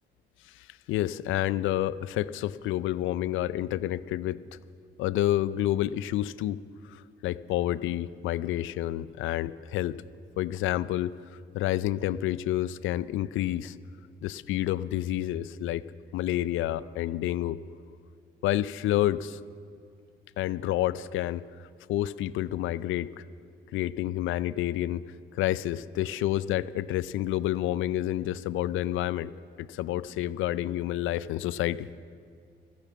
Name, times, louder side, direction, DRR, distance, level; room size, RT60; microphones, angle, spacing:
voice 1, 0.5-4.4 5.0-6.6 6.9-10.0 10.4-11.2 11.5-13.8 14.2-15.8 16.1-17.6 18.4-19.4 20.4-21.5 21.9-23.1 23.7-25.0 25.3-29.3 29.6-31.9, left 13 dB, 80° left, 17 dB, 0.5 m, -29 dB
14.0 x 12.0 x 7.2 m, 2.3 s
supercardioid pair, 65°, 20 cm